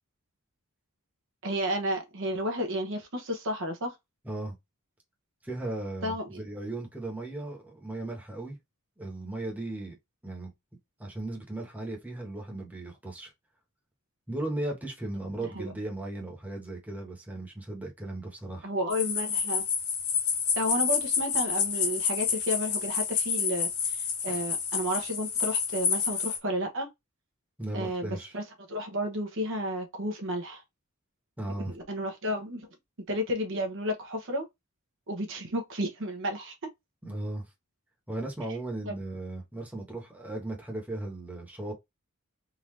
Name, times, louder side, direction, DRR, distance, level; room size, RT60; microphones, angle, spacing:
voice 1, 1.4-3.9 6.0-6.4 15.5-15.7 18.6-19.6 20.6-26.9 27.7-28.4 28.7-30.6 31.7-32.7 33.1-34.4 35.1-36.5 38.8-39.0, equal, 60° right, 1.1 m, -32 dB
voice 2, 4.2-4.5 5.4-8.6 9.0-9.9 10.2-10.5 11.0-13.3 14.3-18.7 24.3-24.4 27.6-28.3 31.4-31.7 37.0-37.4 38.1-41.7, right 2 dB, 10° right, 1.3 m, -36 dB
sound 1, 18.9-26.4, left 6 dB, 80° left, 1.4 m, -29 dB
3.8 x 2.8 x 3.2 m
head